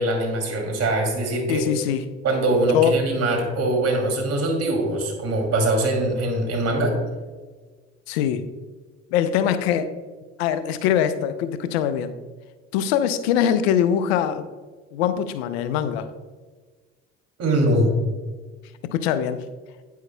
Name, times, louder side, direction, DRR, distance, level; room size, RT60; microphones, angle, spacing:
voice 1, 0.0-1.6 2.2-6.9 17.4-17.9, right 1 dB, 50° right, 2 dB, 2.6 m, -22 dB
voice 2, 1.5-2.0 2.7-3.0 8.1-8.5 9.1-9.9 10.4-12.1 12.7-14.4 14.9-16.1 18.9-19.4, left 9 dB, 80° left, 11 dB, 0.6 m, -22 dB
9.4 x 9.1 x 2.2 m, 1.4 s
hypercardioid pair, 65°, 31 cm